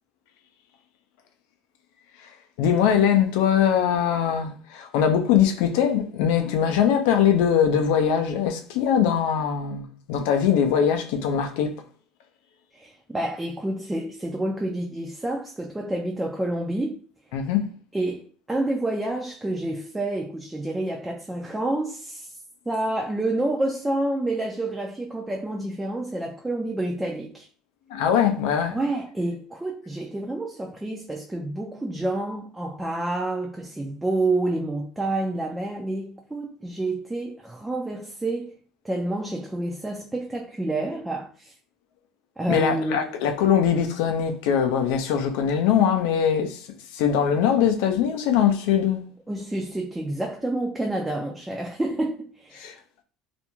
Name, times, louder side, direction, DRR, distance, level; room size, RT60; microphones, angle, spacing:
voice 1, 2.6-11.7 17.3-17.7 27.9-28.8 42.5-46.7 46.9-49.0 52.6-52.7, left 8 dB, 80° left, 0.4 m, -22 dB
voice 2, 12.7-17.0 17.9-22.4 22.7-27.5 28.7-38.6 38.8-41.5 42.4-43.1 49.3-52.7, right 2 dB, 10° right, 0.3 m, -28 dB
2.4 x 2.1 x 2.9 m
cardioid pair, 120°, 0 cm